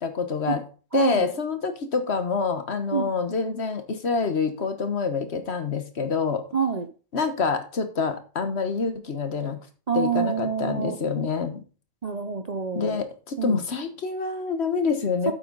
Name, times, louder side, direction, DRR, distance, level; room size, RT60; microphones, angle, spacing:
voice 1, 0.0-0.6 0.9-6.4 7.1-9.6 9.9-11.6 12.7-15.3, left 5 dB, 55° left, 9 dB, 1.4 m, -26 dB
voice 2, 0.9-1.3 2.9-3.1 6.5-6.9 9.9-11.0 12.0-13.0 13.4-13.6 15.3-15.4, right 6 dB, 40° right, 8 dB, 0.7 m, -26 dB
8.5 x 7.9 x 4.0 m, 0.36 s
omnidirectional pair, 1.3 m